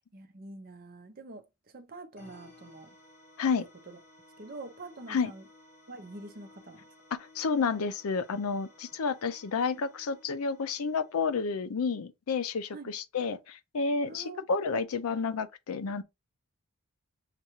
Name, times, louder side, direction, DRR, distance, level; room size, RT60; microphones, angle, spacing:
voice 1, 0.1-2.9 3.9-4.0 4.4-5.5 5.9-6.8 12.7-12.9 14.1-14.5, right 2 dB, 40° right, 0.6 m, -46 dB
sound 1, 2.2-11.6, left 2 dB, 40° left, 1.9 m, -57 dB
voice 2, 7.3-16.0, left 5 dB, 80° left, 0.5 m, -30 dB
6.5 x 2.4 x 3.0 m
head